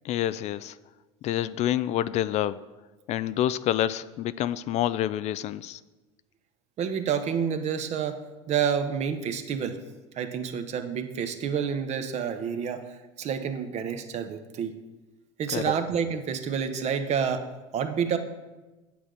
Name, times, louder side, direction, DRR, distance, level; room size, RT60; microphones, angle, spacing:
voice 1, 0.0-0.8 1.2-2.6 3.1-5.8 15.5-15.6, left 12 dB, 45° left, 16 dB, 0.4 m, -27 dB
voice 2, 6.8-8.2 8.5-9.8 10.1-14.7 15.4-17.4 17.7-18.2, right 7 dB, 45° right, 8 dB, 1.1 m, -29 dB
8.8 x 7.6 x 5.0 m, 1.2 s
hypercardioid pair, 80°, 16 cm